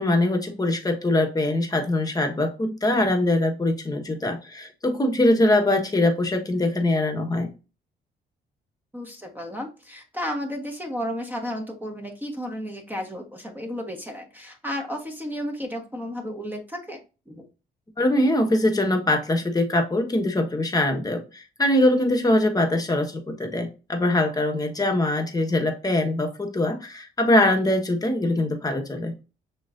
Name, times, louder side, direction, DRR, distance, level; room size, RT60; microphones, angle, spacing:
voice 1, 0.0-7.5 18.0-29.1, left 1 dB, 20° left, 1.2 m, -22 dB
voice 2, 8.9-17.0 17.3-17.4, equal, 10° right, 1.3 m, -33 dB
6.1 x 3.1 x 2.6 m
cardioid pair, 90°, 20 cm